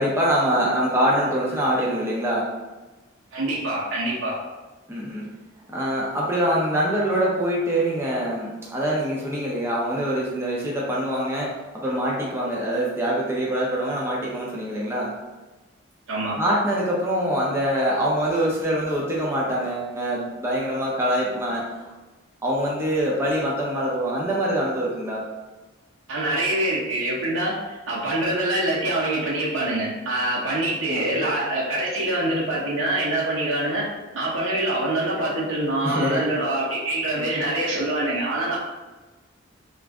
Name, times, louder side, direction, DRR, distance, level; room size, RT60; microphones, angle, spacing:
voice 1, 0.0-2.5 4.9-5.3 5.7-15.1 16.4-21.7 22.4-25.2 30.9-31.3 35.8-36.4, equal, 10° right, -5 dB, 0.6 m, -24 dB
voice 2, 3.3-4.4 16.1-16.4 26.1-33.9 34.1-38.6, right 1 dB, 65° right, -6 dB, 0.8 m, -25 dB
3.0 x 2.4 x 3.5 m, 1.2 s
head